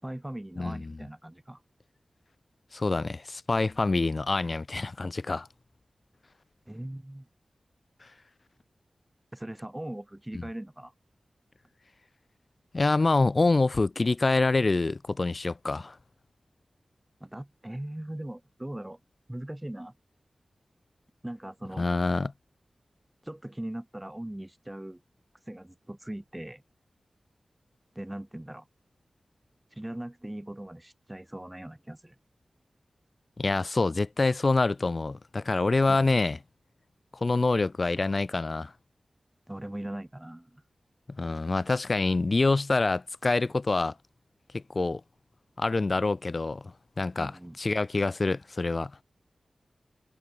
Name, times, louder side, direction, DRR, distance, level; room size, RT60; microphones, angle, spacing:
voice 1, 0.0-1.6 6.7-7.3 9.3-10.9 17.2-19.0 19.3-19.9 21.2-21.9 23.2-25.0 25.5-26.6 28.0-28.7 29.7-32.2 35.8-36.2 39.5-40.6 47.2-47.6, right 1 dB, 10° right, 5.3 m, -40 dB
voice 2, 0.6-0.9 2.7-5.5 8.0-8.1 10.3-10.4 12.7-16.0 21.8-22.3 33.4-36.4 37.1-38.7 41.1-43.9 44.5-45.0 45.6-48.9, left 3 dB, 40° left, 3.2 m, -26 dB
wide cardioid pair, 110°, 0 cm